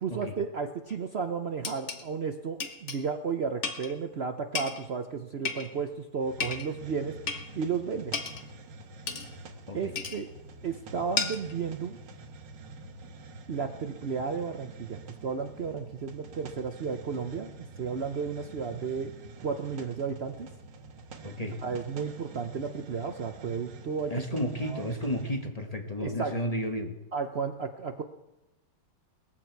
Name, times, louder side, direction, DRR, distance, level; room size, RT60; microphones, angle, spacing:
voice 1, 0.0-7.2 7.6-8.2 9.7-10.3 10.6-12.0 13.5-17.5 17.8-19.1 19.4-20.5 21.6-24.2 24.6-25.1 26.0-26.3 27.1-28.0, right 5 dB, 90° right, 6 dB, 0.5 m, -33 dB
sound 1, 0.9-1.0 1.6-2.0 2.6-3.0 3.6-3.9 4.5-4.8 5.4-5.9 6.4-6.7 7.3-7.5 8.1-8.5 9.1-9.3 10.0-10.2 11.2-11.5, left 5 dB, 40° left, 1.3 m, -33 dB
Hiss, 6.2-25.4, right 2 dB, 65° right, 1.8 m, -47 dB
voice 2, 21.2-21.6 24.1-26.9, equal, 25° left, 4 dB, 1.1 m, -32 dB
20.0 x 14.5 x 4.6 m, 0.99 s
omnidirectional pair, 2.2 m